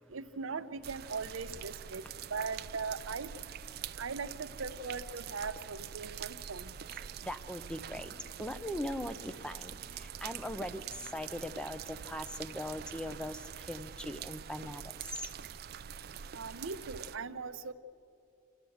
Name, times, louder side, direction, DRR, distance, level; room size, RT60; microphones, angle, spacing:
voice 1, 0.1-2.0 2.3-3.3 4.0-6.7 16.3-17.7, right 4 dB, 80° right, 11 dB, 0.7 m, -39 dB
sound 1, 0.8-17.2, right 8 dB, 50° right, 0.4 m, -45 dB
voice 2, 6.9-15.3, left 1 dB, 5° left, 10 dB, 0.7 m, -40 dB
27.5 x 13.0 x 7.9 m, 2.7 s
head